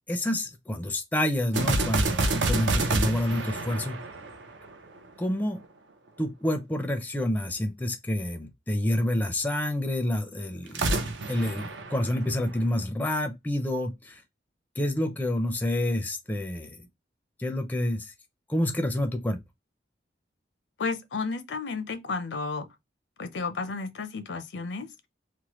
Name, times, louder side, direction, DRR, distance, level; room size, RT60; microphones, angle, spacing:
voice 1, 0.1-4.0 5.2-5.6 6.2-14.2 14.8-16.8 17.4-18.1 18.5-19.4, left 1 dB, 10° left, 0.4 m, -28 dB
sound 1, 1.5-5.0 10.7-12.8, right 2 dB, 80° right, 0.6 m, -28 dB
voice 2, 20.8-22.7 23.2-24.9, left 4 dB, 70° left, 0.5 m, -32 dB
3.1 x 2.1 x 2.9 m
head